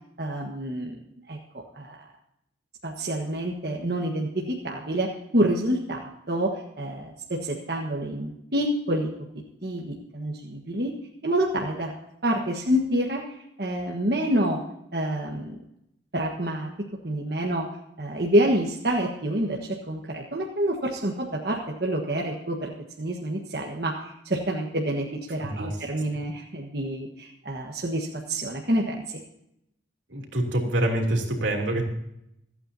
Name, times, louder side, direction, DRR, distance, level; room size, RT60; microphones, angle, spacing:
voice 1, 0.2-1.0 1.3-2.0 2.8-9.1 9.6-10.9 11.2-11.9 12.2-14.6 14.9-15.5 16.1-16.7 17.0-17.7 18.0-22.7 23.0-29.2, right 1 dB, 55° right, 0 dB, 1.5 m, -27 dB
voice 2, 25.4-25.7 30.1-31.8, right 1 dB, 90° right, 1 dB, 3.1 m, -26 dB
26.5 x 8.9 x 2.8 m, 0.80 s
head